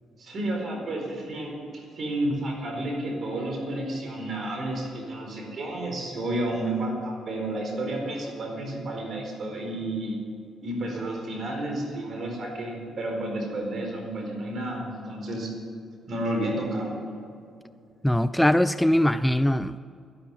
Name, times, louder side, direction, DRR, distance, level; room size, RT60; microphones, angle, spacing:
voice 1, 0.2-10.2 10.6-15.5 16.1-16.9, right 1 dB, 55° right, 2 dB, 4.4 m, -31 dB
voice 2, 18.0-19.8, left 1 dB, 5° left, 13 dB, 0.4 m, -21 dB
12.0 x 11.5 x 8.3 m, 2.5 s
cardioid pair, 90°, 0 cm